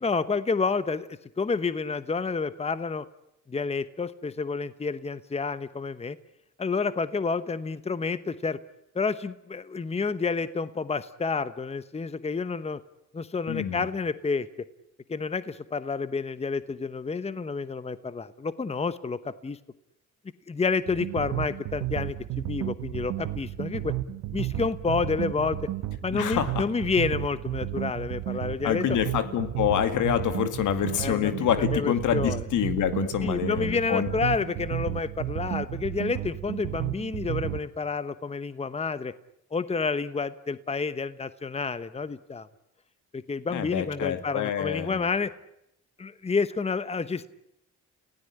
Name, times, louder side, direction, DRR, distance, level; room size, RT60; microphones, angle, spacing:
voice 1, 0.0-3.1 3.5-6.2 6.6-8.6 8.9-12.8 13.1-14.5 15.1-19.6 20.5-23.9 24.3-25.7 26.0-28.8 31.0-32.4 33.2-39.1 39.5-42.5 43.1-45.3 46.0-47.3, left 4 dB, 20° left, 14 dB, 1.0 m, -29 dB
voice 2, 13.5-13.9 26.1-26.7 28.6-34.1 43.5-45.1, left 10 dB, 80° left, 9 dB, 2.3 m, -27 dB
sound 1, 20.9-37.6, right 14 dB, 85° right, 1.3 m, -33 dB
29.5 x 17.0 x 10.0 m, 0.82 s
cardioid pair, 90°, 30 cm